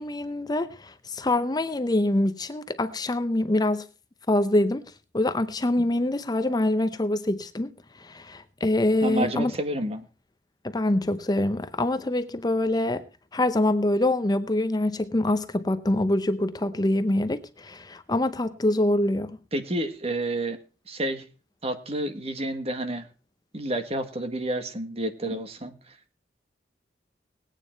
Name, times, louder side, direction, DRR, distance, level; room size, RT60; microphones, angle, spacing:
voice 1, 0.0-3.9 4.3-4.8 5.1-7.7 8.0-9.5 10.6-13.0 13.3-19.3, left 1 dB, 20° left, 0.6 m, -25 dB
voice 2, 9.0-10.0 19.5-20.6 20.9-21.2 21.6-23.1 23.5-25.7, right 1 dB, 35° right, 1.6 m, -29 dB
18.5 x 9.2 x 4.5 m
head